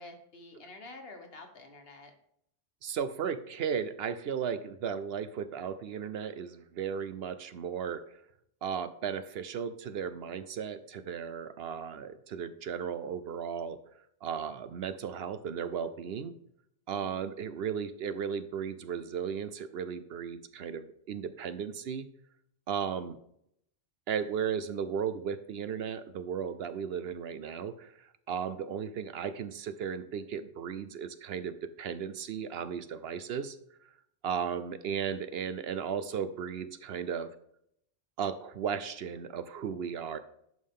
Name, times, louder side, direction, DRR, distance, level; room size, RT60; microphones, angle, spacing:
voice 1, 0.0-2.1 16.9-17.2, left 2 dB, 55° left, 5 dB, 1.5 m, -49 dB
voice 2, 2.8-8.2 8.6-13.8 14.2-16.3 16.9-22.1 22.7-23.2 24.1-33.6 33.8-33.9 34.2-37.3 38.2-40.2, right 7 dB, 65° right, 12 dB, 0.8 m, -35 dB
11.0 x 5.4 x 3.7 m, 0.71 s
omnidirectional pair, 1.2 m